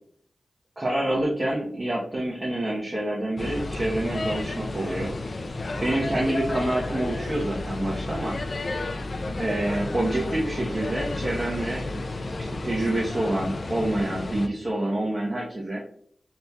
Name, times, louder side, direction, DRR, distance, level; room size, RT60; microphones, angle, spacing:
voice 1, 0.8-5.1 5.8-8.4 9.4-12.0 12.4-15.8, right 1 dB, 40° right, -2 dB, 0.8 m, -27 dB
sound 1, 3.4-14.5, left 2 dB, 60° left, 0.4 m, -32 dB
6.2 x 2.7 x 2.2 m, 0.63 s
cardioid pair, 50°, 0 cm